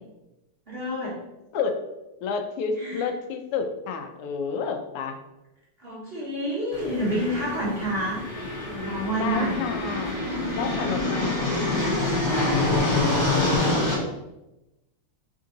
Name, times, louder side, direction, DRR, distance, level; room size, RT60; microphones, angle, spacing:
voice 1, 0.7-1.2 2.8-3.1 5.8-8.3 8.6-9.7 12.2-14.0, equal, 40° right, -7 dB, 1.0 m, -30 dB
voice 2, 2.2-5.2 9.1-10.2 10.5-11.7, left 5 dB, 85° left, 5 dB, 1.6 m, -30 dB
sound 1, 6.7-13.9, left 2 dB, 25° left, 1.3 m, -26 dB
3.9 x 3.6 x 3.8 m, 0.97 s
omnidirectional pair, 2.4 m